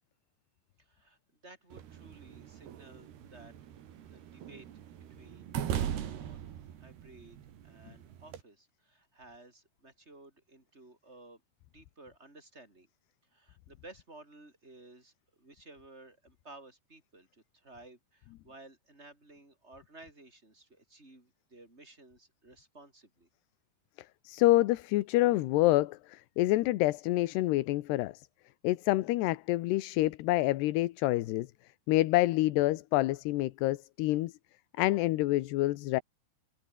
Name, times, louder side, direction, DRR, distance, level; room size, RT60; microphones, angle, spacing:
voice 1, 0.8-3.5 4.0-4.8 5.2-6.4 6.8-7.4 7.6-11.4 11.7-12.9 13.3-23.3, right 2 dB, 15° right, 6.5 m, -55 dB
sound 1, 1.7-8.4, right 10 dB, 75° right, 4.3 m, -40 dB
voice 2, 24.2-28.3 28.6-31.5 31.9-34.3 34.8-36.0, left 17 dB, 85° left, 3.1 m, -27 dB
omnidirectional pair, 4.7 m